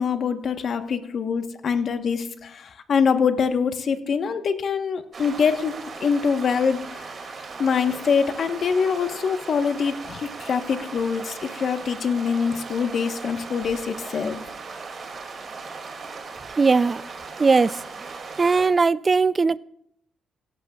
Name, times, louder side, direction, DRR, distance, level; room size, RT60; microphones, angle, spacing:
voice 1, 0.0-7.3 7.6-14.4, left 6 dB, 55° left, 1.0 m, -24 dB
sound 1, 5.1-18.7, right 4 dB, 45° right, 2.3 m, -38 dB
voice 2, 16.6-17.0 17.4-17.8 18.4-19.6, right 4 dB, 30° right, 0.4 m, -19 dB
17.0 x 12.5 x 2.3 m
cardioid pair, 90°, 0 cm